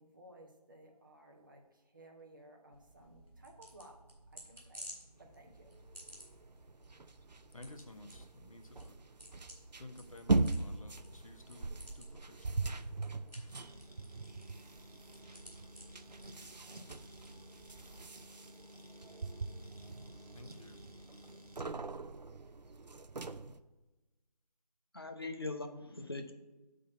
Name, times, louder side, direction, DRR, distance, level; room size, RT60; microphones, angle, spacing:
voice 1, 0.0-4.0 4.3-4.9 5.2-5.7, right 1 dB, 30° right, 1.1 m, -58 dB
sound 1, 2.7-17.9, equal, ahead, 0.9 m, -56 dB
sound 2, 5.3-23.6, right 3 dB, 90° right, 0.6 m, -40 dB
voice 2, 7.5-8.9 9.8-11.7 12.0-12.6 20.3-20.8, left 2 dB, 55° left, 1.1 m, -53 dB
sound 3, 13.5-21.7, equal, 65° right, 1.0 m, -55 dB
voice 3, 24.9-26.3, left 2 dB, 35° left, 0.7 m, -41 dB
8.7 x 3.9 x 6.9 m
figure-of-eight pair, 170°, 21 cm